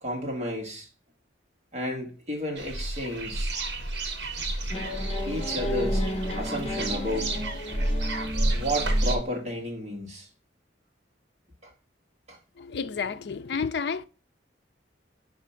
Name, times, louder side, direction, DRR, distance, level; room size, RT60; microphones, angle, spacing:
voice 1, 0.0-0.9 1.7-3.5 5.3-6.1 6.3-7.3 8.5-10.3 11.6-11.7 12.3-12.4, equal, 35° right, 1.6 m, -32 dB
sound 1, 2.6-9.2, right 1 dB, 65° right, 1.3 m, -29 dB
sound 2, 4.7-9.4, left 1 dB, 35° left, 1.1 m, -34 dB
voice 2, 12.6-14.0, left 5 dB, 60° left, 0.4 m, -30 dB
5.0 x 4.9 x 5.6 m
head